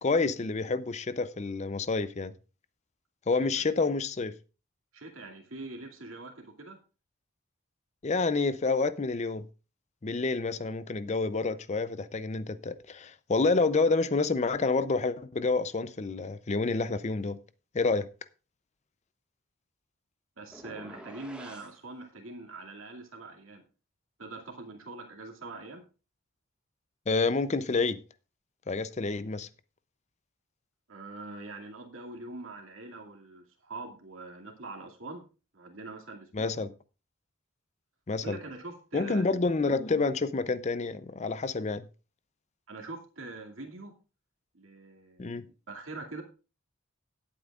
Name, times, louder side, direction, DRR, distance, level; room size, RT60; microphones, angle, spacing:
voice 1, 0.0-2.3 3.3-4.4 8.0-9.5 10.0-17.4 17.7-18.1 27.1-28.0 28.7-29.5 36.3-36.7 38.1-38.4 38.9-41.9 45.2-45.5, left 3 dB, 35° left, 0.5 m, -28 dB
voice 2, 4.9-6.8 20.4-23.6 24.2-25.8 30.9-35.2 35.5-36.5 38.2-39.3 42.7-43.9 44.5-46.2, right 2 dB, 75° right, 2.4 m, -43 dB
sound 1, 20.5-21.8, right 1 dB, 5° right, 1.6 m, -47 dB
17.0 x 8.6 x 2.4 m
head